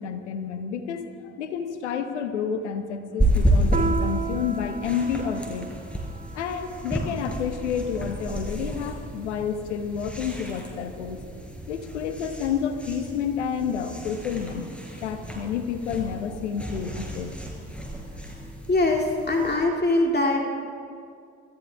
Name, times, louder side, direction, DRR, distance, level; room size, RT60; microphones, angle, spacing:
voice 1, 0.0-5.7 6.1-11.2 11.7-14.7 15.0-17.4, left 7 dB, 90° left, 8 dB, 1.0 m, -30 dB
sound 1, 3.2-19.6, right 1 dB, 5° left, 4.7 m, -31 dB
Piano, 3.7-8.7, right 5 dB, 20° right, 0.8 m, -35 dB
voice 2, 18.7-20.4, left 2 dB, 30° left, 0 dB, 2.3 m, -22 dB
25.0 x 14.0 x 3.5 m, 2.3 s
hypercardioid pair, 50°, 34 cm